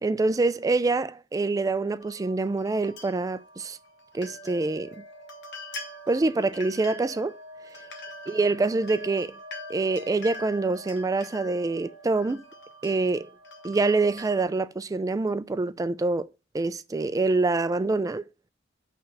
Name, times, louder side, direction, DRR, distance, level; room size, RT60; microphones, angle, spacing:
voice 1, 0.0-3.8 4.1-4.9 6.1-7.3 8.3-9.3 9.7-12.4 12.8-13.3 13.6-16.3 16.5-18.3, right 3 dB, 20° right, 0.3 m, -25 dB
sound 1, 2.0-14.4, left 1 dB, 65° left, 1.0 m, -43 dB
5.6 x 3.3 x 5.2 m
head